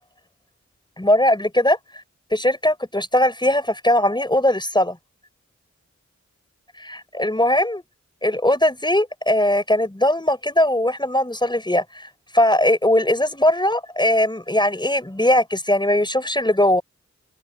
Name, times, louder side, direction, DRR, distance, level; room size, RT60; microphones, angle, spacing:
voice 1, 1.0-1.8 2.3-5.0 6.8-7.8 8.2-12.1 12.3-16.8, left 1 dB, 15° left, 5.4 m, -19 dB
wide cardioid pair, 90°, 29 cm